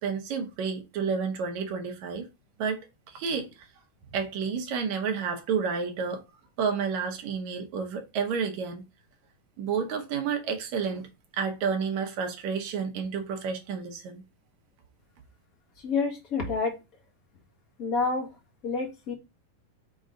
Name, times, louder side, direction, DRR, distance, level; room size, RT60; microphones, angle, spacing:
voice 1, 0.0-2.3 2.6-2.8 3.1-3.7 4.1-6.2 6.6-8.8 9.6-11.1 11.3-14.2, right 6 dB, 65° right, 2.1 m, -30 dB
voice 2, 15.8-16.8 17.8-18.3 18.6-19.1, left 4 dB, 35° left, 1.6 m, -28 dB
6.5 x 3.8 x 3.8 m
omnidirectional pair, 3.9 m